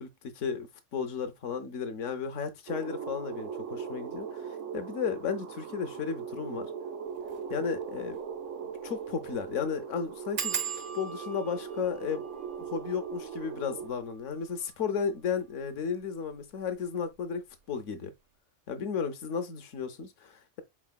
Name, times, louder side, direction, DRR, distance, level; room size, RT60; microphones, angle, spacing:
voice 1, 0.0-6.7 7.5-8.2 8.8-12.2 12.7-17.4 17.7-18.1 18.7-20.6, left 6 dB, 75° left, 1.1 m, -34 dB
sound 1, 2.7-13.9, right 7 dB, 75° right, 1.0 m, -39 dB
sound 2, 7.2-7.4 7.8-7.9 8.1-8.2 8.8-9.0 9.3-9.4 10.4-15.6 16.3-16.8 17.1-17.5 17.7-17.8, right 7 dB, 55° right, 0.6 m, -40 dB
4.8 x 4.1 x 2.3 m
omnidirectional pair, 1.3 m